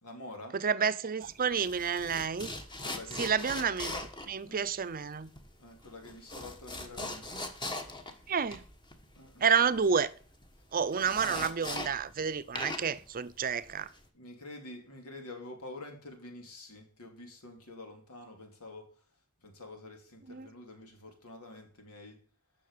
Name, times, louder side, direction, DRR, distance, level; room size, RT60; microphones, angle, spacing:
voice 1, 0.0-0.6 2.8-3.4 4.4-4.6 5.6-7.3 9.1-9.5 14.1-22.2, left 2 dB, 85° left, 2.8 m, -48 dB
voice 2, 0.6-2.5 3.2-5.3 8.3-8.6 9.4-10.1 10.7-13.9 20.3-20.5, right 6 dB, 40° right, 0.6 m, -30 dB
sound 1, 1.2-12.3 12.5-14.1, left 2 dB, 20° left, 1.4 m, -41 dB
10.5 x 6.3 x 6.7 m
head